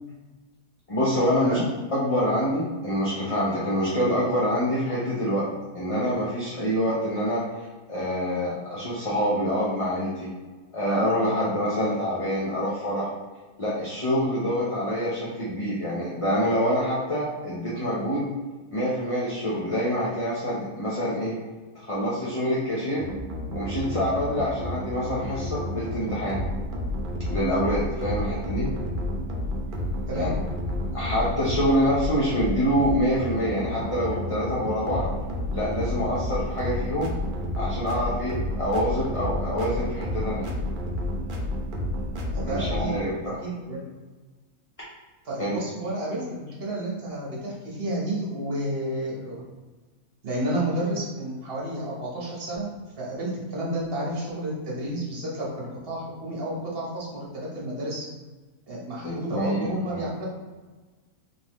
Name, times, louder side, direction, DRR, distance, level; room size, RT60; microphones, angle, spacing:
voice 1, 0.9-1.6 1.9-5.5 5.7-10.3 10.7-13.1 13.6-18.3 18.7-21.3 21.7-23.1 23.5-26.4 27.3-28.7 30.1-30.3 30.9-35.1 35.5-37.1 37.6-40.5 42.4-43.4 45.4-45.6 59.0-60.0, equal, 30° left, -8 dB, 0.6 m, -26 dB
sound 1, 23.0-42.8, left 1 dB, 60° right, 0.5 m, -31 dB
voice 2, 42.3-42.9 43.4-43.8 45.2-49.4 50.2-58.0 58.7-60.3, right 1 dB, 40° right, -5 dB, 1.2 m, -31 dB
3.8 x 3.5 x 3.0 m, 1.3 s
omnidirectional pair, 1.6 m